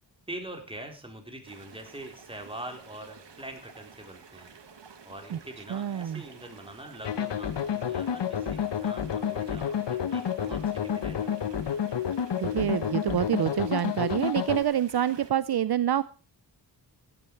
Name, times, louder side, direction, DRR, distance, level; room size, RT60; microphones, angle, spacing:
voice 1, 0.3-4.5 5.0-11.5, right 1 dB, 15° right, 3 dB, 3.8 m, -43 dB
sound 1, 1.4-15.3, right 6 dB, 85° right, 1.9 m, -51 dB
voice 2, 5.7-6.2 12.4-16.0, right 10 dB, 65° right, 16 dB, 0.6 m, -27 dB
sound 2, 7.0-14.6, left 8 dB, 80° left, 1.0 m, -30 dB
15.5 x 11.0 x 4.6 m, 0.36 s
wide cardioid pair, 80°, 42 cm